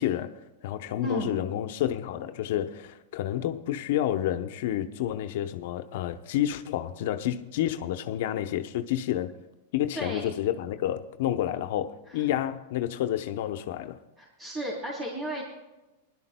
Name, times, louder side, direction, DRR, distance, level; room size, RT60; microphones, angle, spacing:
voice 1, 0.0-9.3 9.7-14.0, left 12 dB, 65° left, 0.8 m, -29 dB
voice 2, 1.0-1.3 9.9-10.3 14.2-15.4, equal, 20° right, 3.2 m, -33 dB
21.0 x 12.0 x 2.2 m
hypercardioid pair, 120°, 0 cm